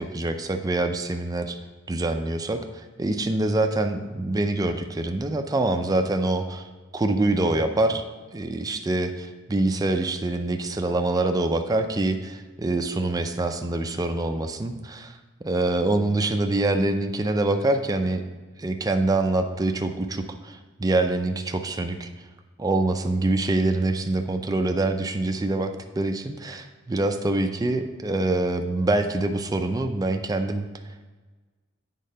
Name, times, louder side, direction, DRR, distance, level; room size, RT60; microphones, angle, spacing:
voice 1, 0.0-1.6 1.9-6.7 6.9-8.0 8.3-15.2 15.4-18.2 18.6-22.1 22.6-30.7, right 2 dB, 15° right, 5 dB, 0.4 m, -25 dB
8.5 x 3.7 x 5.5 m, 1.3 s
head